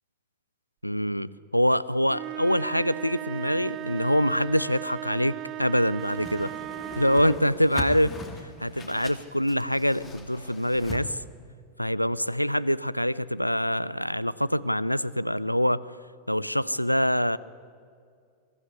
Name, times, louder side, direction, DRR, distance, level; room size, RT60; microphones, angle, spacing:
voice 1, 0.8-6.5 7.0-8.2 8.6-11.2 11.8-15.9 16.3-17.4, equal, 90° left, 20 dB, 0.5 m, -25 dB
sound 1, 2.1-7.5, right 15 dB, 35° right, 0.5 m, -37 dB
Whoosh swoosh swish, 6.0-11.0, left 2 dB, 20° left, 2.5 m, -39 dB
22.5 x 13.0 x 9.6 m, 2.2 s
figure-of-eight pair, 90°, 0 cm